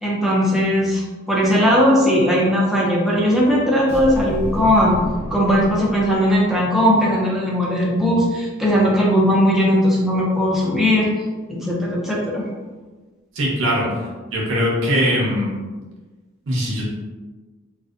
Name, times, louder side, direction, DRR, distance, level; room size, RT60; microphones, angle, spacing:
voice 1, 0.0-5.0 5.3-11.1 11.5-12.4, equal, ahead, -5 dB, 0.4 m, -18 dB
sound 1, 3.9-6.7, equal, 50° left, 0.8 m, -30 dB
voice 2, 13.4-13.9 14.3-15.5 16.5-16.8, equal, 70° right, -3 dB, 0.6 m, -20 dB
2.6 x 2.1 x 2.4 m, 1.3 s
head